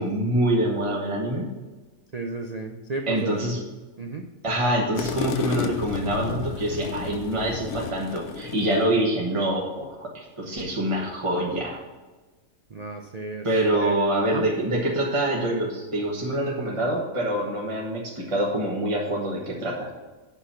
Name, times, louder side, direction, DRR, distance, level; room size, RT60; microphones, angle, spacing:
voice 1, 0.0-1.5 3.1-3.6 4.4-11.8 13.4-19.9, right 1 dB, 25° right, -3 dB, 1.3 m, -25 dB
voice 2, 2.1-3.3 4.0-4.3 12.7-13.5 13.8-14.5, right 3 dB, 50° right, 3 dB, 0.4 m, -33 dB
sound 1, 4.9-9.0, left 6 dB, 75° left, 1.1 m, -32 dB
8.2 x 5.9 x 5.7 m, 1.2 s
omnidirectional pair, 1.5 m